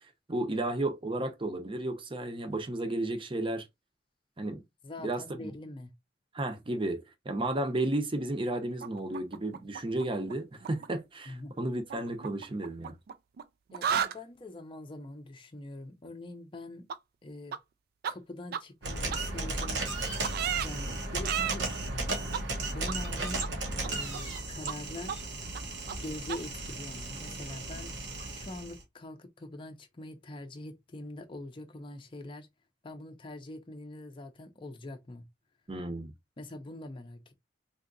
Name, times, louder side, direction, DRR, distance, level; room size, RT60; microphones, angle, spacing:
voice 1, 0.3-3.7 4.4-4.6 5.0-5.5 6.3-12.9 35.7-36.1, right 2 dB, 30° right, 0.6 m, -33 dB
voice 2, 4.8-5.9 11.3-11.6 13.7-16.9 17.2-17.6 18.0-19.9 20.6-22.2 22.7-23.5 23.8-25.2 26.0-27.9 28.3-32.5 32.8-35.3 36.4-37.3, left 2 dB, 30° left, 0.5 m, -44 dB
sound 1, 8.8-10.3 10.6-10.9 11.9-13.4 13.7-14.2 16.9-17.0 17.5-17.6 18.0-18.1 18.5-18.6 19.1-19.2 19.6-19.7 20.2-20.7 21.2-21.6 22.3-22.4 22.9-23.0 23.4-23.5 23.8-24.4 24.7-24.8 25.1-25.2 25.5-25.6 25.9-26.0 26.3-26.4, right 8 dB, 60° right, 0.3 m, -33 dB
sound 2, 18.8-28.8, right 2 dB, 85° right, 1.0 m, -35 dB
3.5 x 2.8 x 2.5 m
head